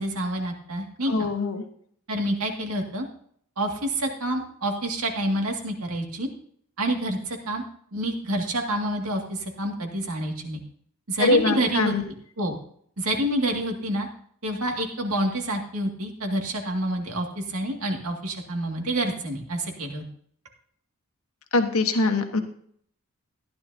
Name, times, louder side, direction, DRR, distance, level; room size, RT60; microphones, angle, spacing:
voice 1, 0.0-1.3 2.1-3.1 3.6-6.3 6.8-7.6 7.9-10.6 11.1-11.9 12.4-12.6 13.0-14.1 14.4-20.1, right 1 dB, 90° right, 2 dB, 2.1 m, -28 dB
voice 2, 1.1-1.6 11.2-12.0 21.5-22.4, left 3 dB, 80° left, 6 dB, 1.2 m, -22 dB
15.0 x 10.5 x 2.8 m, 0.62 s
head